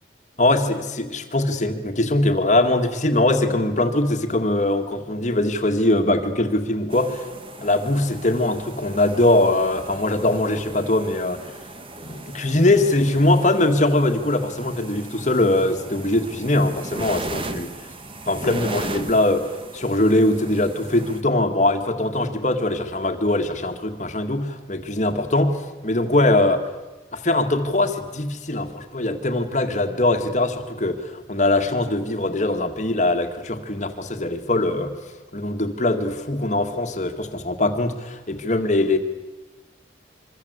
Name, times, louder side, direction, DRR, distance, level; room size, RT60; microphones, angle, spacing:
voice 1, 0.4-7.3 7.6-11.5 12.0-17.7 18.3-26.7 27.1-34.9 35.3-39.0, left 2 dB, 40° left, 6 dB, 2.0 m, -21 dB
sound 1, 6.9-21.2, right 2 dB, 30° right, 1.7 m, -37 dB
26.5 x 24.5 x 8.2 m, 1.2 s
head